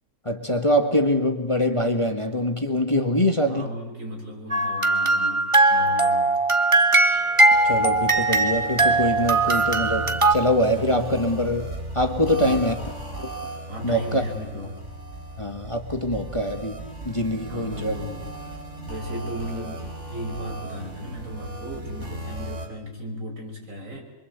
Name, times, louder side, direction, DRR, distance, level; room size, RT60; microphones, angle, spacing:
voice 1, 0.3-3.7 7.6-11.7 11.9-12.8 13.2-13.3 13.8-14.2 15.4-16.8 17.1-18.0, left 1 dB, 20° left, 5 dB, 1.8 m, -24 dB
voice 2, 3.5-6.3 12.2-12.8 13.7-14.8 17.5-18.2 18.9-24.0, equal, 70° right, 1 dB, 6.7 m, -35 dB
sound 1, 4.5-10.3, right 2 dB, 20° right, 1.5 m, -20 dB
sound 2, 6.7-22.7, right 1 dB, 55° right, 5.2 m, -37 dB
26.0 x 24.0 x 8.2 m, 1.1 s
omnidirectional pair, 1.5 m